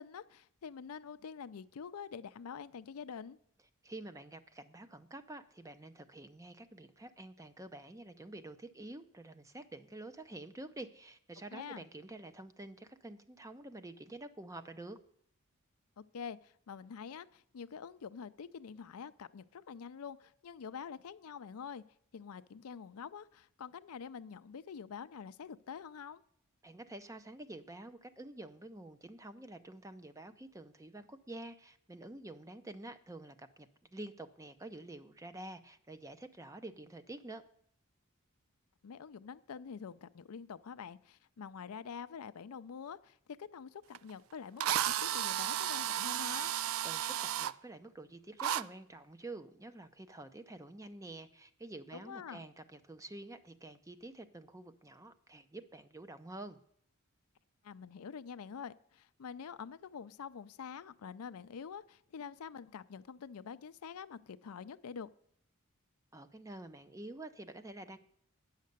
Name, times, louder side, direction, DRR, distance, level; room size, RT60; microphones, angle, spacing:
voice 1, 0.0-3.4 11.5-11.8 16.0-21.8 22.1-26.2 38.8-46.5 51.9-52.4 57.6-65.1, left 6 dB, 80° left, 13 dB, 0.5 m, -46 dB
voice 2, 3.8-15.0 26.6-37.4 46.8-56.6 66.1-68.0, right 2 dB, 15° right, 11 dB, 0.5 m, -48 dB
Drill, 43.9-44.0 44.6-47.5 48.4-48.6, right 11 dB, 65° right, 0.3 m, -33 dB
9.4 x 6.5 x 6.6 m, 0.66 s
head